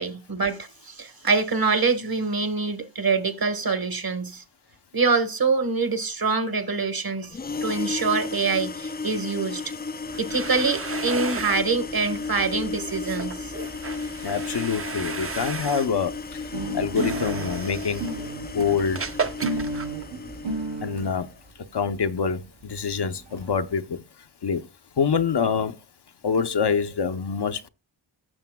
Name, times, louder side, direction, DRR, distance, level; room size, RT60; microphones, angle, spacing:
voice 1, 0.0-4.4 4.9-9.7 10.2-13.5 16.7-16.8, right 4 dB, 50° right, 1.4 m, -25 dB
sound 1, 7.3-21.2, left 4 dB, 25° left, 0.4 m, -34 dB
sound 2, 10.0-20.7, right 4 dB, 30° right, 0.7 m, -35 dB
voice 2, 14.2-16.1 16.7-18.0 18.5-19.0 20.8-21.3 21.7-23.8 24.4-24.6 25.0-25.7 26.2-27.7, left 6 dB, 60° left, 0.7 m, -25 dB
sound 3, 16.5-21.1 22.0-22.1 22.3-22.4 22.6-22.7 22.9-23.6, right 2 dB, 70° right, 1.3 m, -33 dB
15.0 x 6.8 x 2.2 m
wide cardioid pair, 70°, 46 cm